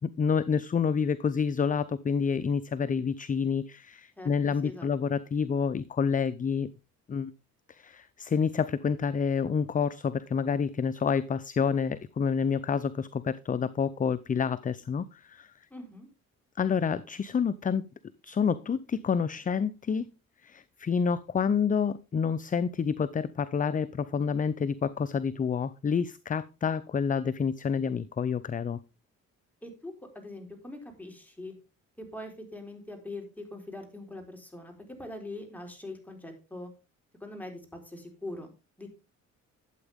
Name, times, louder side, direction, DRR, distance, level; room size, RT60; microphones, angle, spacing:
voice 1, 0.0-6.7 7.1-7.3 7.7-15.5 16.6-17.9 18.2-20.1 20.4-28.8, left 6 dB, 25° left, 0.5 m, -28 dB
voice 2, 4.2-5.1 15.7-16.1 29.6-31.5 32.0-34.7 35.0-36.7 37.2-38.9, left 2 dB, 5° left, 3.9 m, -42 dB
12.5 x 8.1 x 3.5 m
cardioid pair, 90°, 30 cm